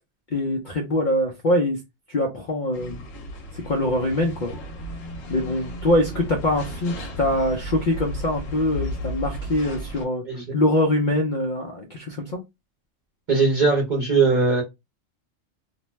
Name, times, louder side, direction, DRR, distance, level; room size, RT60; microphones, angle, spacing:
voice 1, 0.3-1.8 2.1-3.0 3.5-4.5 5.3-10.2 10.5-12.4, left 1 dB, 55° left, 0.6 m, -23 dB
sound 1, 2.7-10.1, equal, 85° left, 1.1 m, -34 dB
voice 2, 13.3-14.6, right 4 dB, 45° right, 0.8 m, -19 dB
2.6 x 2.1 x 3.0 m
omnidirectional pair, 1.3 m